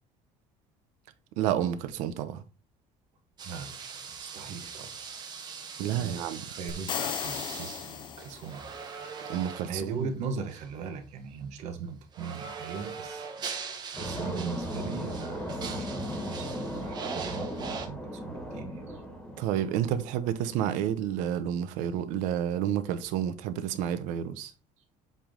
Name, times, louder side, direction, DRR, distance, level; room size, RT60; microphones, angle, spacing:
voice 1, 1.4-2.4 5.8-6.4 9.3-10.1 19.4-24.5, right 10 dB, 90° right, 0.7 m, -30 dB
sound 1, 3.4-9.9 10.5-10.7 12.1-17.9, right 6 dB, 35° right, 1.1 m, -41 dB
voice 2, 3.4-4.9 5.9-8.7 9.7-19.0, right 5 dB, 65° right, 1.2 m, -39 dB
sound 2, 6.7-8.8, left 8 dB, 40° left, 0.5 m, -35 dB
sound 3, 14.0-20.4, equal, 5° left, 1.6 m, -37 dB
7.6 x 3.4 x 3.7 m
cardioid pair, 150°, 13 cm